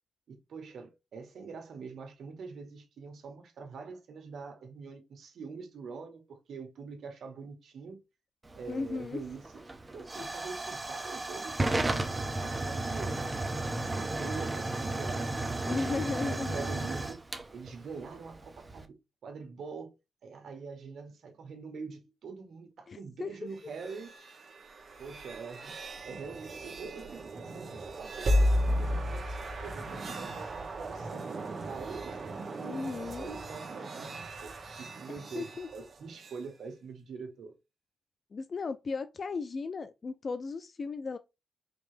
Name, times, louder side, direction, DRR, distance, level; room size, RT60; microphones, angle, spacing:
voice 1, 0.3-8.0 8.5-9.5 9.9-13.3 13.9-15.9 16.2-17.2 17.5-19.0 19.2-19.9 20.2-24.1 25.0-25.8 26.0-32.2 32.5-35.5 35.7-37.5, right 5 dB, 75° right, 1.4 m, -44 dB
Hiss / Fire / Tick, 8.4-18.8, right 2 dB, 20° right, 0.7 m, -34 dB
voice 2, 8.7-9.2 10.2-10.3 15.6-16.7 22.9-23.3 32.6-33.3 35.3-35.7 38.3-41.2, left 4 dB, 45° left, 0.3 m, -36 dB
sound 1, 23.6-36.4, equal, 45° right, 1.3 m, -34 dB
5.2 x 2.9 x 3.3 m
cardioid pair, 115°, 0 cm